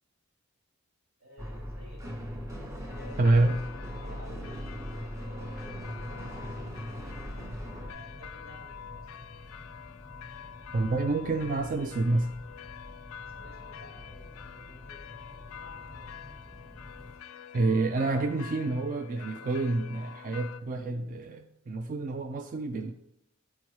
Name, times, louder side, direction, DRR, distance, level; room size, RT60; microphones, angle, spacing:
voice 1, 1.2-2.5 2.7-3.8 4.0-6.9 7.8-9.0 13.2-15.1 15.5-16.2, equal, 85° right, 2.7 m, -53 dB
sound 1, 1.4-7.9, equal, 15° right, 0.8 m, -39 dB
sound 2, 2.9-20.6, left 8 dB, 75° left, 0.3 m, -47 dB
voice 2, 3.2-3.6 10.7-12.3 17.5-22.9, right 2 dB, 40° right, 0.4 m, -27 dB
sound 3, 5.8-17.2, left 1 dB, 5° left, 1.1 m, -49 dB
8.4 x 4.6 x 3.1 m
head